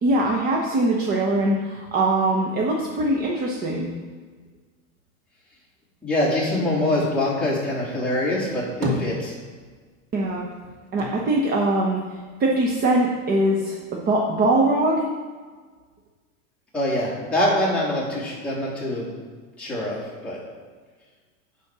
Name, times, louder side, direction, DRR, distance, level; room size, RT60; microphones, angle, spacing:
voice 1, 0.0-3.9 10.1-10.5 10.9-12.0 12.4-15.1, right 2 dB, 25° right, -1 dB, 1.0 m, -22 dB
voice 2, 6.0-9.3 16.7-19.1 19.6-20.4, left 1 dB, 5° left, -8 dB, 2.8 m, -24 dB
sound 1, 8.8-9.9 10.2-12.5 12.9-13.8, equal, 70° right, 2.7 m, -33 dB
10.5 x 4.3 x 6.1 m, 1.5 s
supercardioid pair, 145°, 40 cm